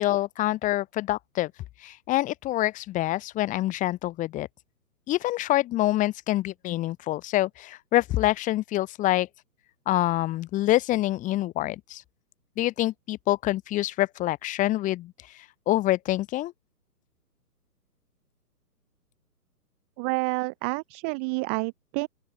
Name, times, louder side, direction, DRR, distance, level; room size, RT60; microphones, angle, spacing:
voice 1, 0.0-1.5 1.8-4.5 5.1-9.3 9.9-12.0 12.6-15.1 15.7-16.5, left 15 dB, 15° left, 3.2 m, -26 dB
voice 2, 20.0-22.1, right 34 dB, 10° right, 0.7 m, -29 dB
open air
hypercardioid pair, 155°, 49 cm